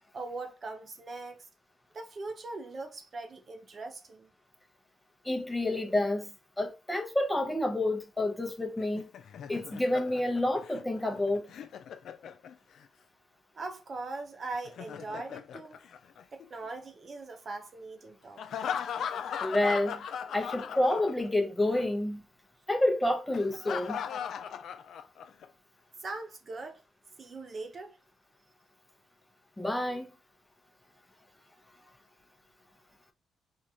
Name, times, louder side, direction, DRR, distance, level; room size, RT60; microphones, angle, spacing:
voice 1, 0.1-1.5 1.9-4.3 13.5-15.8 16.3-18.6 26.0-26.8 27.2-28.0, right 3 dB, 40° right, 0.6 m, -41 dB
voice 2, 5.2-6.3 6.6-9.1 9.5-11.5 19.4-20.0 20.3-22.2 22.7-24.0 29.6-30.1, left 1 dB, 10° left, 0.7 m, -29 dB
Laughter, 8.8-12.8 14.5-16.7 18.4-21.4 21.7-21.8 23.3-25.4, left 8 dB, 65° left, 0.4 m, -38 dB
4.6 x 2.4 x 2.8 m
cardioid pair, 90°, 0 cm